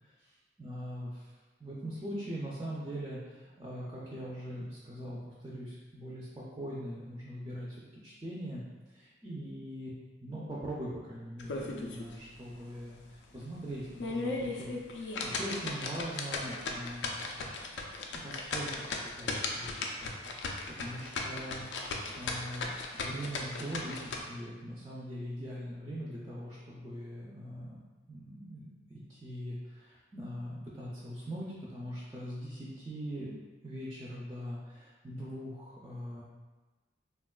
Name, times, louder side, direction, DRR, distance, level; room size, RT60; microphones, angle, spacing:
voice 1, 0.2-1.3 1.6-8.6 8.9-9.9 10.2-17.2 18.1-20.2 20.8-21.6 22.2-27.8 28.1-36.2, equal, 20° right, -6 dB, 0.3 m, -41 dB
sound 1, 11.4-12.1 12.5-12.6 13.1-13.2 13.8-24.2, left 3 dB, 75° left, 0.3 m, -37 dB
3.5 x 2.2 x 2.2 m, 1.3 s
head